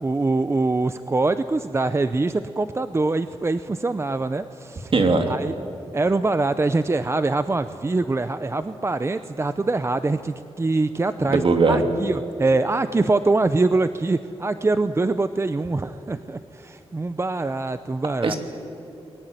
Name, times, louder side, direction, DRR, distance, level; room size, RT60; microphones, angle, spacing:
voice 1, 0.0-4.9 5.3-5.5 5.9-18.3, right 3 dB, 25° right, 11 dB, 0.6 m, -24 dB
voice 2, 4.9-5.3 11.3-11.8 18.2-18.4, right 3 dB, 55° right, 5 dB, 2.9 m, -19 dB
29.5 x 22.0 x 9.2 m, 3.0 s
wide cardioid pair, 135°, 11 cm